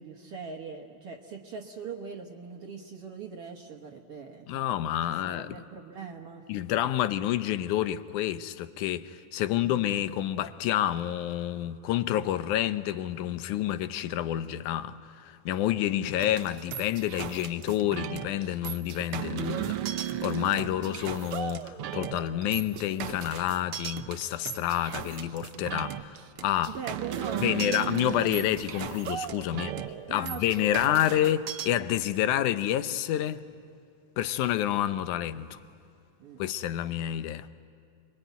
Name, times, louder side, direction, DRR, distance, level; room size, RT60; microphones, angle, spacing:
voice 1, 0.0-4.5 5.2-6.4 9.6-9.8 16.0-16.2 26.7-27.9 29.5-29.8 30.1-31.2 36.2-36.4, right 5 dB, 55° right, 1.9 m, -41 dB
voice 2, 4.5-5.6 6.5-26.2 26.4-26.8 27.4-29.8 30.1-33.4 34.2-35.6 36.4-37.5, left 12 dB, 80° left, 2.2 m, -29 dB
sound 1, 16.2-31.7, right 11 dB, 90° right, 1.2 m, -36 dB
27.0 x 22.0 x 9.3 m
omnidirectional pair, 3.5 m